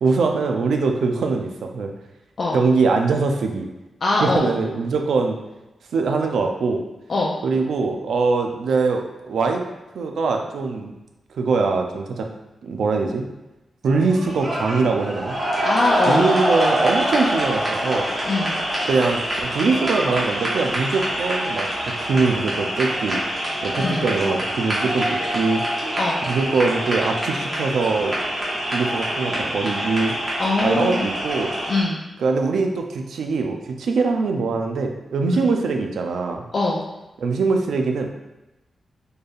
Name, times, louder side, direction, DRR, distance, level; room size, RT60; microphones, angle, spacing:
voice 1, 0.0-1.9 2.5-3.7 4.2-5.4 5.9-6.8 7.4-9.6 9.9-10.9 11.4-12.3 12.6-13.3 13.8-15.4 16.1-18.0 18.9-21.7 22.0-23.2 23.6-25.6 26.3-28.1 28.7-30.1 30.6-31.5 32.2-36.4 37.2-38.1, right 4 dB, 85° right, 3 dB, 0.5 m, -22 dB
voice 2, 4.0-4.5 7.1-7.3 15.6-16.2 18.3-18.6 23.8-24.1 26.0-26.2 30.4-31.1 31.7-32.0 35.3-35.4 36.5-36.8, left 2 dB, 45° left, -3 dB, 0.4 m, -22 dB
sound 1, 13.9-31.8, equal, 25° right, 1.2 m, -25 dB
4.3 x 3.3 x 2.4 m, 0.99 s
wide cardioid pair, 125°, 0 cm